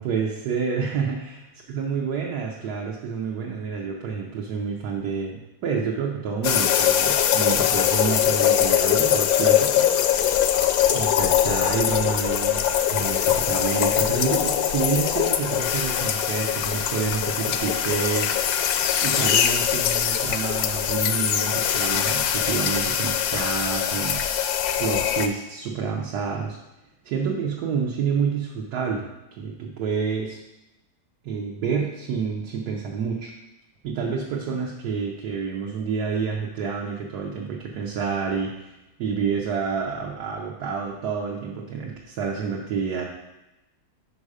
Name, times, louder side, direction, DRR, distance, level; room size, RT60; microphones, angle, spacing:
voice 1, 0.0-1.4 1.7-9.9 10.9-12.6 12.9-18.3 19.0-24.2 24.8-26.6 27.0-29.1 29.4-30.4 31.2-33.3 33.8-38.7 39.0-43.0, right 6 dB, 75° right, -2 dB, 1.4 m, -28 dB
sound 1, 6.4-25.3, left 10 dB, 70° left, 0.9 m, -22 dB
5.6 x 5.4 x 4.9 m, 0.96 s
omnidirectional pair, 1.7 m